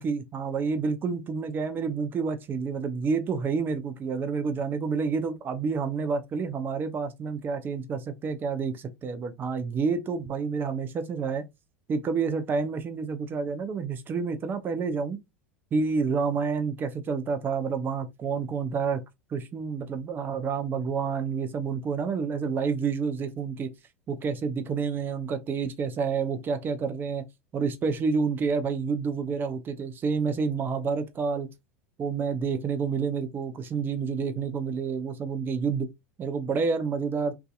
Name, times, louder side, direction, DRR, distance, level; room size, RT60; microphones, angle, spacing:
voice 1, 0.0-11.4 11.9-15.2 15.7-19.0 19.3-23.7 24.1-27.2 27.5-31.5 32.0-35.9 36.2-37.3, right 5 dB, 30° right, 0.5 m, -29 dB
2.6 x 2.3 x 2.3 m
hypercardioid pair, 85°, 7 cm